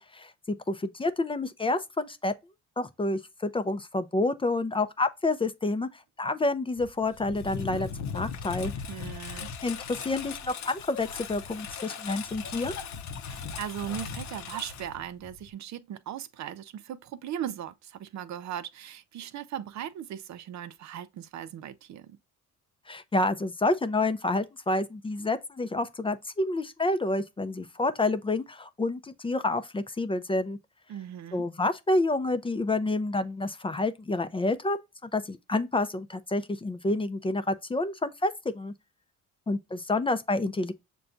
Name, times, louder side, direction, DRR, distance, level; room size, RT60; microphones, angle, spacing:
voice 1, 0.0-2.3 2.8-8.7 9.6-9.8 10.0-12.7 22.9-30.6 31.3-38.7 39.5-40.7, left 2 dB, 20° left, 0.4 m, -29 dB
Engine, 6.8-15.5, left 6 dB, 65° left, 0.6 m, -38 dB
voice 2, 8.9-9.5 13.3-22.2 30.9-31.5, right 10 dB, 65° right, 0.6 m, -38 dB
6.7 x 2.3 x 2.5 m
cardioid pair, 90°, 30 cm